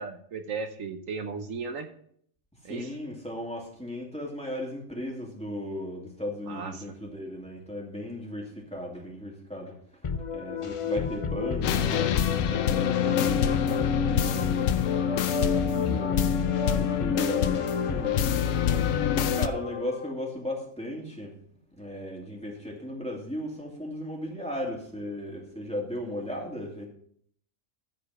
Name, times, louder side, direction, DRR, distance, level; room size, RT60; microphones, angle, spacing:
voice 1, 0.0-1.9 2.6-2.9 6.5-6.8, right 5 dB, 75° right, 7 dB, 1.3 m, -35 dB
voice 2, 2.7-9.7 10.3-14.7 14.9-16.2 16.7-18.2 19.1-21.4 21.8-26.9, left 1 dB, 5° left, -2 dB, 2.6 m, -36 dB
sound 1, 10.0-20.1, left 6 dB, 40° left, 0.4 m, -31 dB
sound 2, 11.6-19.5, left 8 dB, 80° left, 1.0 m, -27 dB
14.5 x 5.0 x 5.8 m, 0.63 s
omnidirectional pair, 1.4 m